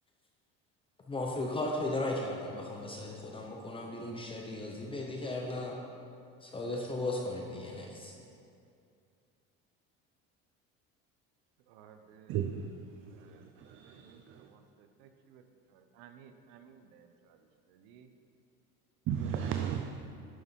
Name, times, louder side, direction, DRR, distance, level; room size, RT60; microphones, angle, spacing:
voice 1, 1.1-5.8 6.4-8.1, left 2 dB, 15° left, 0 dB, 0.9 m, -36 dB
voice 2, 11.7-12.4 13.1-13.5 13.8-15.4 15.7-18.1 19.5-20.0, right 7 dB, 80° right, 7 dB, 0.9 m, -58 dB
voice 3, 12.3-13.3 13.6-14.5 19.1-20.0, right 8 dB, 45° right, 6 dB, 0.5 m, -35 dB
11.0 x 6.9 x 4.5 m, 2.4 s
cardioid pair, 140°, 30 cm